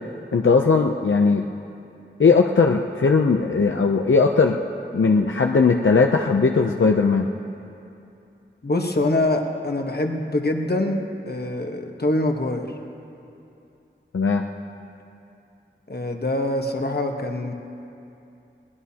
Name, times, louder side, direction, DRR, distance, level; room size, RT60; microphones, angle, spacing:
voice 1, 0.3-1.4 2.2-4.6 4.9-7.3 14.1-14.4, left 4 dB, 85° left, 3 dB, 0.6 m, -18 dB
voice 2, 8.6-12.7 15.9-17.5, left 1 dB, 55° left, 3 dB, 1.2 m, -24 dB
21.0 x 18.5 x 2.9 m, 2.7 s
wide cardioid pair, 50°, 20 cm